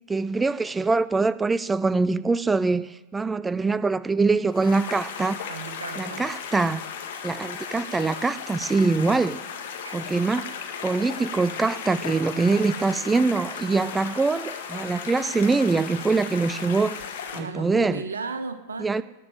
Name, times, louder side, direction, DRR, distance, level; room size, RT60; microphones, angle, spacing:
voice 1, 0.1-5.5 6.0-6.9 7.2-9.4 9.9-10.5 10.8-17.1 17.3-18.0 18.8-19.0, right 3 dB, 10° right, 0.4 m, -23 dB
sound 1, 4.5-17.4, left 7 dB, 55° left, 2.0 m, -36 dB
voice 2, 5.4-6.2 9.8-10.0 17.3-19.0, right 4 dB, 75° right, 1.5 m, -35 dB
19.0 x 7.1 x 7.5 m
figure-of-eight pair, 90°, 0 cm